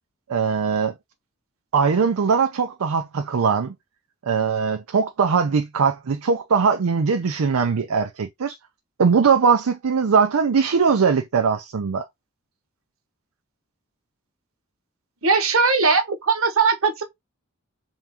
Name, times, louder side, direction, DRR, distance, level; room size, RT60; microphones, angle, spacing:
voice 1, 0.3-0.9 1.7-3.7 4.3-8.6 9.0-12.0, right 5 dB, 85° right, 0.5 m, -20 dB
voice 2, 15.2-17.0, right 4 dB, 70° right, 1.1 m, -19 dB
3.6 x 2.9 x 3.4 m
head